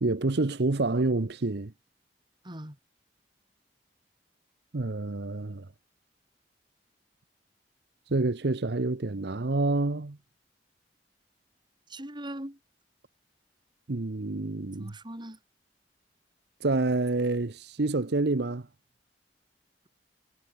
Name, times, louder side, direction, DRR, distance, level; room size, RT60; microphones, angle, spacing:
voice 1, 0.0-1.7 4.7-5.7 8.1-10.2 13.9-14.9 16.6-18.7, right 2 dB, 65° right, 0.9 m, -28 dB
voice 2, 2.4-2.8 11.9-12.6 14.8-15.4, right 1 dB, 25° right, 4.9 m, -40 dB
head